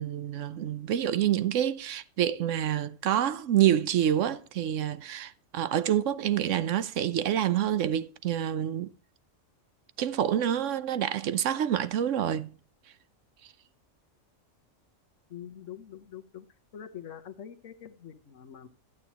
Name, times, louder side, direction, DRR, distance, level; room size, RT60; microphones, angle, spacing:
voice 1, 0.0-8.9 10.0-12.6, right 10 dB, 75° right, 1.0 m, -27 dB
voice 2, 15.3-16.4 16.7-18.7, left 9 dB, 75° left, 1.3 m, -44 dB
12.0 x 8.6 x 3.0 m
omnidirectional pair, 1.3 m